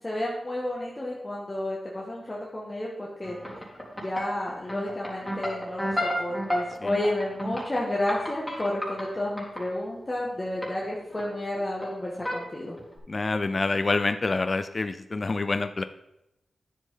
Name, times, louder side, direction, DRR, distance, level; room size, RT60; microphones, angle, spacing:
voice 1, 0.0-3.4 4.0-12.8, left 1 dB, 30° left, -4 dB, 1.8 m, -31 dB
sound 1, 3.2-9.6 10.6-10.9 11.1-11.8 12.2-12.4 12.8-13.0, equal, 5° left, 3.9 m, -32 dB
voice 2, 13.1-15.8, left 3 dB, 45° left, 10 dB, 0.4 m, -27 dB
10.0 x 7.3 x 3.8 m, 0.88 s
cardioid pair, 50°, 0 cm